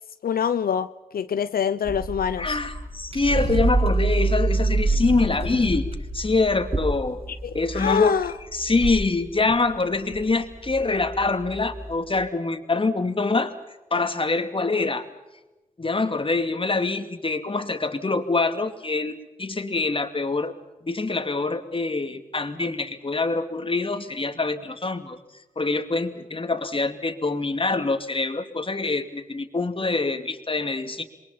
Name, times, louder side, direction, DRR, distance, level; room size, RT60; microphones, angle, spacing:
voice 1, 0.2-2.6 7.4-7.5 7.8-8.3, left 8 dB, 85° left, 12 dB, 0.7 m, -25 dB
sound 1, 1.8-12.2, right 2 dB, 40° right, 7.3 m, -27 dB
voice 2, 2.4-7.2 7.5-8.2 8.5-13.5 13.9-15.0 15.8-20.5 20.8-25.2 25.6-31.0, left 3 dB, 35° left, 8 dB, 2.5 m, -25 dB
27.5 x 22.5 x 5.7 m, 1.0 s
cardioid pair, 75°, 15 cm